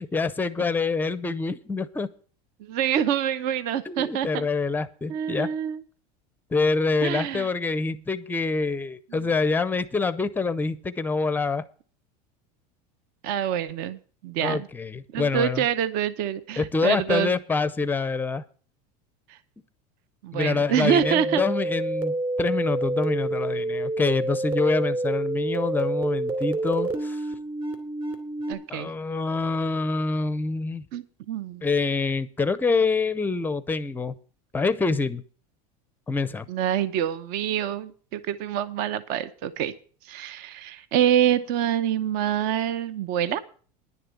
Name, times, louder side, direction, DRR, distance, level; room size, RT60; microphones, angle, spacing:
voice 1, 0.0-2.1 3.9-5.5 6.5-11.6 14.4-15.6 16.6-18.4 20.3-27.2 28.7-30.8 31.6-34.1 34.5-35.2 36.1-36.5, left 4 dB, 10° left, 14 dB, 0.6 m, -26 dB
voice 2, 2.6-4.5 5.1-5.8 7.0-7.5 13.2-14.7 15.1-17.3 19.3-19.4 20.2-21.4 28.5-28.9 30.9-31.7 36.5-39.7 40.0-43.4, right 10 dB, 50° right, 14 dB, 0.8 m, -26 dB
sound 1, 21.0-28.5, right 2 dB, 25° right, 2.6 m, -28 dB
10.5 x 6.7 x 8.2 m, 0.40 s
supercardioid pair, 150°, 20 cm